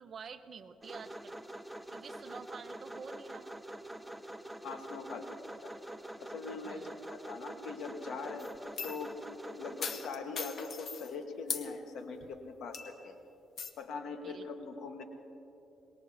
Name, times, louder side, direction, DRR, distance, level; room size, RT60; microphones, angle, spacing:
voice 1, 0.0-1.4 1.9-3.6 6.6-7.0 14.2-14.5, right 5 dB, 50° right, 8 dB, 0.9 m, -48 dB
sound 1, 0.8-10.1, right 1 dB, 5° right, 0.6 m, -45 dB
voice 2, 4.6-5.3 5.6-5.7 6.2-9.2 9.6-13.2 13.8-15.0, left 4 dB, 80° left, 4 dB, 1.5 m, -42 dB
sound 2, 8.4-9.1 9.8-11.1 11.5-11.7 12.2-12.3 12.7-13.1 13.6-13.7, left 6 dB, 55° left, 1.1 m, -39 dB
23.5 x 21.0 x 2.8 m, 2.8 s
cardioid pair, 90°, 0 cm